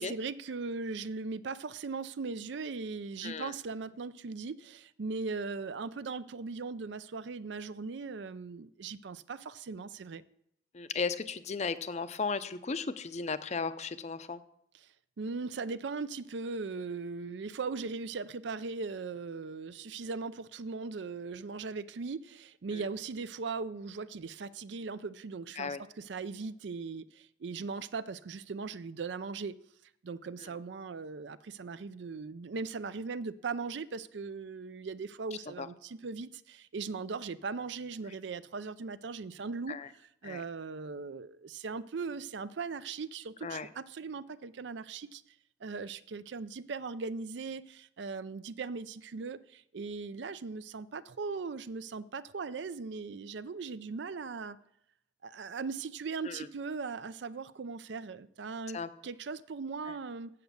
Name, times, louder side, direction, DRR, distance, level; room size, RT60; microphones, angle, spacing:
voice 1, 0.0-10.2 15.2-29.6 30.0-39.8 40.2-45.2 45.6-54.6 55.2-60.3, right 4 dB, 65° right, 0.5 m, -39 dB
voice 2, 3.2-3.5 10.7-14.4 22.7-22.8 25.6-25.8 30.4-30.5 35.5-35.7 39.7-39.9 40.2-40.4 43.4-43.7 56.2-56.5 58.7-58.9 59.9-60.0, left 4 dB, 35° left, 0.5 m, -36 dB
8.4 x 7.9 x 6.9 m
head